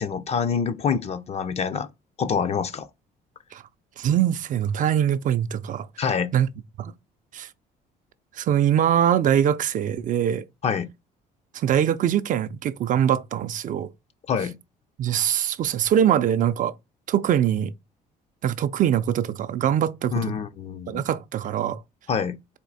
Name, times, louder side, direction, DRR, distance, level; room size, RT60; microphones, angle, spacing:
voice 1, 0.0-1.9 2.2-2.9 6.0-6.3 10.6-10.9 14.3-14.6 20.1-21.0 22.1-22.4, left 6 dB, 40° left, 0.5 m, -26 dB
voice 2, 4.0-5.9 6.3-6.5 6.8-6.9 7.3-7.5 8.3-10.5 11.5-13.9 15.0-16.7 17.1-17.7 18.4-20.2 20.9-21.8, right 10 dB, 50° right, 0.4 m, -23 dB
4.3 x 2.7 x 4.0 m
cardioid pair, 110°, 17 cm